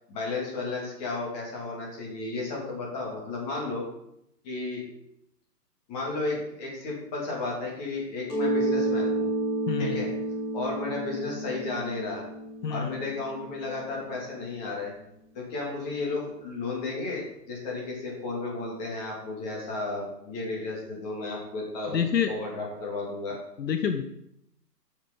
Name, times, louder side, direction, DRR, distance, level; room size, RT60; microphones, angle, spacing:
voice 1, 0.1-3.8 4.4-4.8 5.9-9.3 9.8-10.1 10.5-12.3 12.7-14.9 15.3-23.4, left 3 dB, 25° left, -2 dB, 2.3 m, -33 dB
Mallet percussion, 8.3-13.8, right 2 dB, 5° left, 0.7 m, -30 dB
voice 2, 21.9-22.3 23.6-24.0, left 7 dB, 75° left, 7 dB, 0.9 m, -27 dB
8.1 x 6.6 x 3.8 m, 0.78 s
hypercardioid pair, 155°, 50 cm